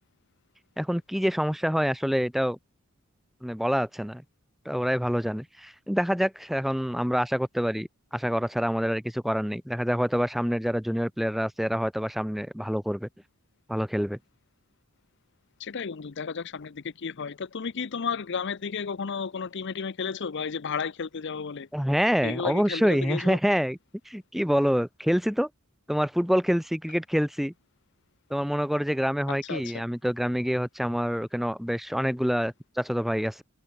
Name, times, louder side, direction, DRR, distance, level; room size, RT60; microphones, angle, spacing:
voice 1, 0.8-2.6 3.4-4.2 4.7-13.1 13.7-14.2 21.7-23.8 24.1-25.5 25.9-27.5 28.3-33.4, equal, ahead, 0.6 m, -26 dB
voice 2, 15.6-21.7 22.2-23.4 29.3-29.7, left 5 dB, 55° left, 0.6 m, -33 dB
head